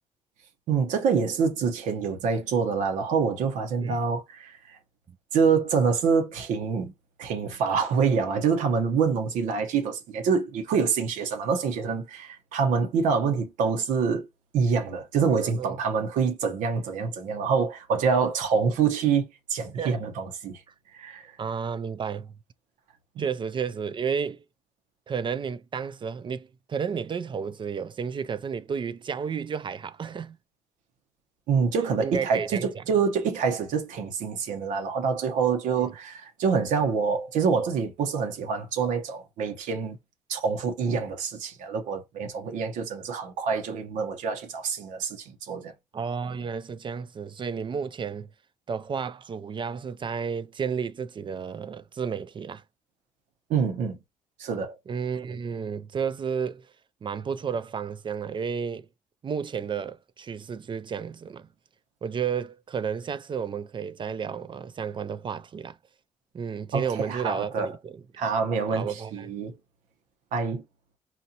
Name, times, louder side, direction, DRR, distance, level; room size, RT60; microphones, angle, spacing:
voice 1, 0.7-4.8 5.3-6.9 7.2-14.3 14.5-20.6 20.9-21.3 23.2-23.3 31.5-40.0 40.3-45.7 53.5-54.0 54.4-54.8 66.7-67.7 68.2-69.6 70.3-70.6, right 5 dB, 85° right, 0.9 m, -26 dB
voice 2, 15.3-15.8 19.7-20.0 21.4-22.3 23.2-24.4 25.1-30.4 32.0-32.8 45.9-48.3 48.7-52.6 54.9-56.7 57.0-58.9 59.2-61.5 62.0-65.7 66.3-68.0 68.7-69.3, right 6 dB, 40° right, 0.4 m, -32 dB
4.3 x 2.3 x 2.7 m
supercardioid pair, 70°, 13 cm